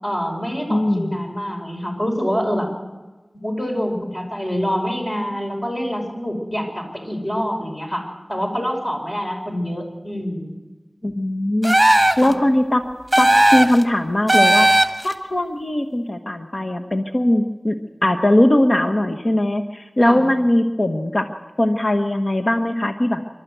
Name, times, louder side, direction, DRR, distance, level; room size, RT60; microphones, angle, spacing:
voice 1, 0.0-2.7 3.4-10.5 12.1-12.3 20.0-20.2, equal, 35° left, 1 dB, 5.3 m, -26 dB
voice 2, 0.7-1.1 11.0-11.8 12.2-12.8 13.2-14.7 15.0-17.8 18.0-21.3 21.6-23.2, left 1 dB, 55° left, 6 dB, 1.1 m, -19 dB
sound 1, 11.6-12.3 13.1-13.8 14.3-15.1, right 1 dB, 15° right, 1.6 m, -15 dB
26.0 x 12.5 x 8.0 m, 1.2 s
wide cardioid pair, 50°, 0 cm